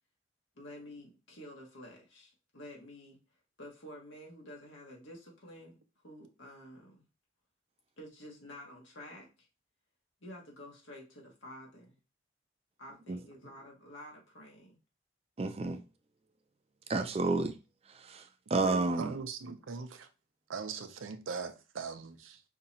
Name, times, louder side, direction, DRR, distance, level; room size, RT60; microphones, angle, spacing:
voice 1, 0.5-3.2 3.6-5.8 6.0-7.0 8.0-9.5 10.2-11.9 12.8-14.7, left 1 dB, 85° left, 1.7 m, -50 dB
voice 2, 15.4-15.8 16.9-17.6 18.0-18.2 18.5-19.2, right 3 dB, 30° right, 0.4 m, -30 dB
voice 3, 18.6-20.1 20.5-22.4, right 5 dB, 90° right, 0.6 m, -41 dB
5.3 x 2.8 x 2.7 m
head